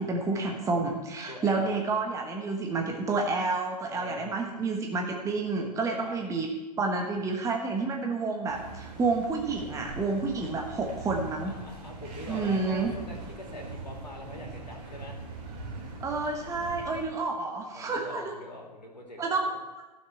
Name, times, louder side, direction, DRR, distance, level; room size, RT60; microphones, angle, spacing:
voice 1, 0.0-6.5 6.8-11.6 12.3-12.9 16.0-18.3 19.2-19.4, right 3 dB, 15° right, 1 dB, 1.2 m, -29 dB
voice 2, 1.3-1.8 3.8-4.3 6.0-6.2 11.4-15.2 17.7-19.4, left 1 dB, 90° left, 1 dB, 2.7 m, -43 dB
sound 1, 8.5-17.0, right 3 dB, 40° right, 2.8 m, -42 dB
15.5 x 6.9 x 4.5 m, 1.1 s
figure-of-eight pair, 105°, 21 cm